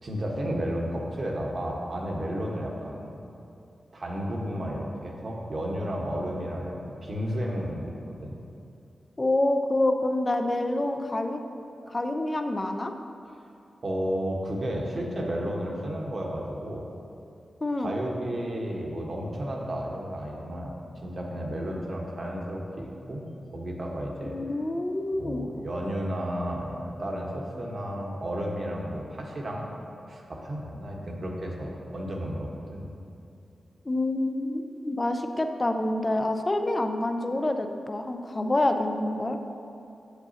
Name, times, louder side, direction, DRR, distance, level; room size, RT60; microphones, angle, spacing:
voice 1, 0.0-3.3 3.9-8.4 13.8-16.9 17.8-24.4 25.1-29.7 30.1-32.9, equal, 55° right, -1 dB, 1.1 m, -32 dB
voice 2, 9.2-11.4 11.9-12.9 17.6-17.9 24.2-25.5 33.9-39.4, left 1 dB, 30° left, 6 dB, 0.5 m, -27 dB
8.1 x 6.7 x 2.8 m, 2.7 s
cardioid pair, 60°, 0 cm